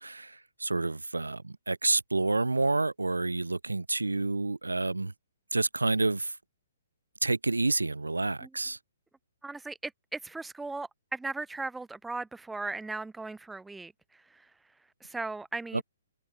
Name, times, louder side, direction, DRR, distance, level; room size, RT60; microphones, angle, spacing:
voice 1, 0.0-5.1 5.5-6.4 7.2-8.8 15.7-15.8, right 3 dB, 80° right, 1.6 m, -29 dB
voice 2, 9.4-14.5 15.0-15.8, right 3 dB, 5° right, 1.4 m, -38 dB
figure-of-eight pair, 125°, 0 cm